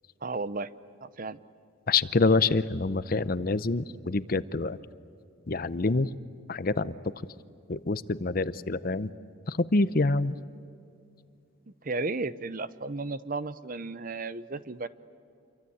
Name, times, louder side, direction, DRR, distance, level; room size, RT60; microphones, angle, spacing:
voice 1, 0.2-0.7 1.0-1.4 11.8-14.9, right 3 dB, 40° right, 15 dB, 0.7 m, -34 dB
voice 2, 1.9-4.8 5.5-6.1 6.5-6.9 7.7-9.1 9.5-10.4, left 3 dB, 45° left, 15 dB, 0.7 m, -26 dB
28.5 x 23.5 x 8.6 m, 2.5 s
head